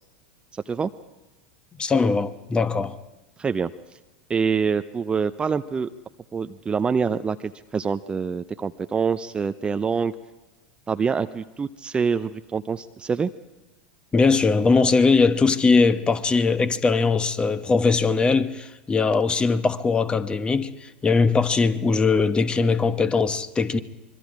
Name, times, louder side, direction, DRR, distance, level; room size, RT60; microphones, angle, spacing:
voice 1, 0.5-0.9 3.4-3.7 4.3-5.9 6.3-10.1 10.9-13.3, right 5 dB, 20° right, 0.6 m, -25 dB
voice 2, 1.8-3.0 14.1-23.8, left 4 dB, 20° left, 1.1 m, -20 dB
25.5 x 23.5 x 4.9 m
figure-of-eight pair, 85°, 5 cm